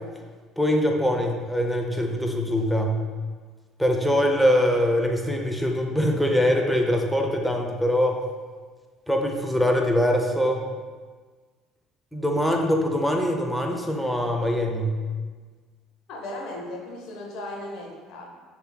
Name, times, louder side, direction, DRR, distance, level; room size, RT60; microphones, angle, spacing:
voice 1, 0.6-3.0 3.8-8.2 9.1-10.6 12.1-14.9, equal, ahead, 2 dB, 0.6 m, -23 dB
voice 2, 16.1-18.3, left 1 dB, 60° left, 0 dB, 0.8 m, -36 dB
6.6 x 2.9 x 2.2 m, 1.5 s
hypercardioid pair, 60°, 0 cm